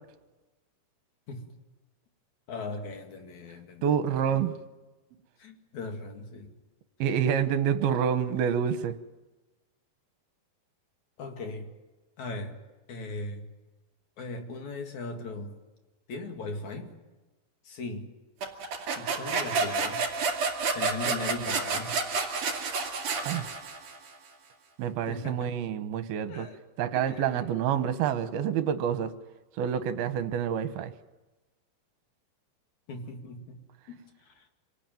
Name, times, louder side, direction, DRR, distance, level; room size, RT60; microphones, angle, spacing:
voice 1, 2.5-3.8 4.3-4.4 5.4-6.5 11.2-11.7 12.2-12.6 12.9-13.5 14.2-15.6 16.1-17.0 17.6-18.1 19.0-20.0 20.7-22.0 25.1-25.6 26.3-26.6 26.9-27.4 32.9-33.6 33.9-34.5, left 3 dB, 50° left, 4 dB, 3.2 m, -38 dB
voice 2, 3.8-4.5 7.0-8.9 23.2-23.5 24.8-26.5 26.8-29.1 29.5-30.9, right 8 dB, 70° right, 10 dB, 2.8 m, -27 dB
sound 1, 18.4-24.1, right 4 dB, 55° right, 3.7 m, -30 dB
26.5 x 18.5 x 9.2 m, 1.1 s
omnidirectional pair, 4.8 m